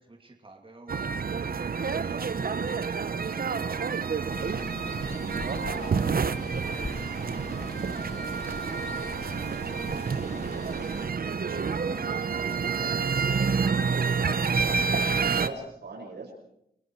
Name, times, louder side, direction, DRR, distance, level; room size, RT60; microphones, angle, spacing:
voice 1, 0.0-1.4 2.0-4.4 5.0-6.0 6.4-14.8, right 2 dB, 30° right, 2 dB, 2.8 m, -51 dB
sound 1, 0.9-15.5, right 5 dB, 60° right, 1.0 m, -28 dB
sound 2, 2.4-11.1, left 3 dB, 70° left, 4.5 m, -54 dB
Water, 4.3-11.1, left 3 dB, 40° left, 1.6 m, -42 dB
voice 2, 5.2-6.1 12.3-13.0 15.3-16.3, right 3 dB, 90° right, 0 dB, 6.0 m, -40 dB
30.0 x 18.5 x 4.7 m, 0.77 s
wide cardioid pair, 85°, 17 cm